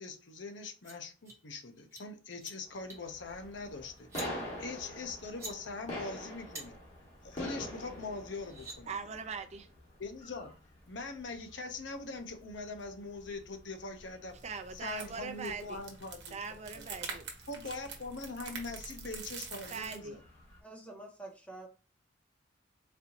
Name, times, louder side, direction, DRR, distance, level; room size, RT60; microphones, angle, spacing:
voice 1, 0.0-4.1 4.6-6.8 7.2-8.9 10.0-10.5 10.9-14.4 14.7-16.4 16.7-16.9 17.5-20.2, left 3 dB, 65° left, 0.7 m, -42 dB
sound 1, 0.6-0.9 1.2-1.4 1.8-2.0 2.3-2.5 2.9-3.1 4.0-4.3 5.2-5.5 6.5-6.6 8.0-8.1 8.3-8.8, right 2 dB, 15° right, 1.3 m, -45 dB
sound 2, 2.6-20.6, left 1 dB, 35° left, 1.7 m, -48 dB
voice 2, 8.9-9.7 14.4-15.8 16.3-17.3 19.7-20.2, right 5 dB, 35° right, 0.5 m, -41 dB
sound 3, 14.3-20.0, right 5 dB, 60° right, 1.1 m, -46 dB
voice 3, 20.6-21.7, right 2 dB, 10° left, 1.2 m, -47 dB
4.2 x 2.7 x 2.9 m
head